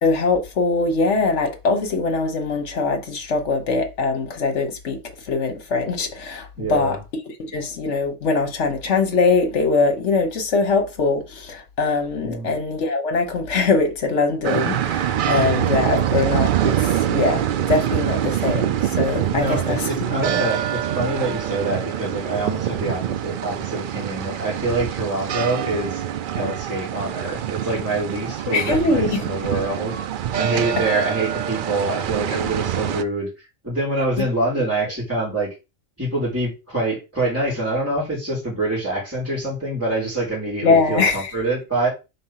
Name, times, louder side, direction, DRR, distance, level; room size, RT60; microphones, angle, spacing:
voice 1, 0.0-7.0 7.4-19.9 28.5-29.2 40.6-41.3, left 3 dB, 60° left, 1.5 m, -22 dB
voice 2, 6.6-7.0 12.2-12.5 19.3-26.0 26.3-29.9 30.4-33.3 33.6-35.5 36.0-41.9, right 2 dB, 10° right, 3.9 m, -25 dB
sound 1, 14.4-33.0, right 10 dB, 85° right, 0.4 m, -25 dB
5.3 x 3.8 x 5.7 m
omnidirectional pair, 1.4 m